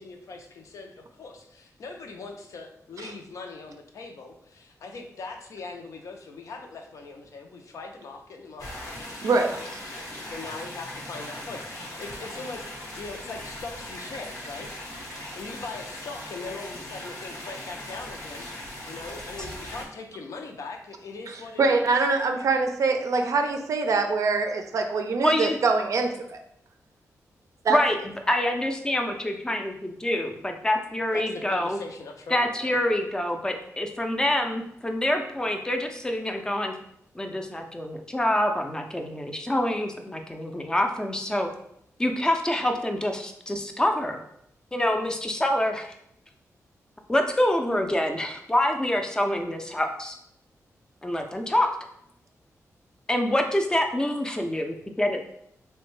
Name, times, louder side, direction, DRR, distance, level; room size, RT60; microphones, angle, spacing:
voice 1, 0.0-14.8 15.3-21.8 31.1-32.8, left 3 dB, 70° left, 3 dB, 0.5 m, -41 dB
sound 1, 8.6-19.8, left 1 dB, 90° left, 0.9 m, -39 dB
voice 2, 21.6-26.4 27.6-27.8, right 4 dB, 65° right, 5 dB, 0.4 m, -24 dB
voice 3, 25.2-25.6 27.7-28.0 28.3-31.8 32.3-36.7 37.2-41.5 42.0-44.2 44.7-45.9 47.1-50.2 51.0-51.8 53.1-55.4, left 1 dB, 15° left, 4 dB, 0.4 m, -26 dB
3.4 x 2.1 x 3.1 m, 0.72 s
wide cardioid pair, 105°, 6 cm